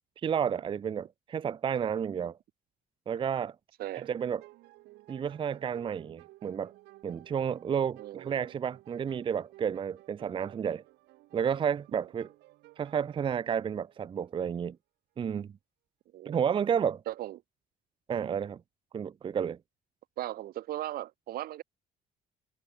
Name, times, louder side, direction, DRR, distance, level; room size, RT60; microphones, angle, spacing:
voice 1, 0.2-2.4 3.1-3.6 3.9-4.4 5.1-6.7 7.0-10.8 11.3-12.3 12.8-14.8 15.2-15.5 16.3-17.0 18.1-18.6 18.9-19.6, right 7 dB, 30° right, 0.5 m, -31 dB
voice 2, 3.8-4.1 8.0-8.4 11.9-12.1 16.1-16.4 17.1-17.4 20.2-21.6, right 14 dB, 65° right, 0.7 m, -37 dB
sound 1, 4.0-14.5, right 19 dB, 85° right, 2.6 m, -56 dB
cardioid pair, 110°, 17 cm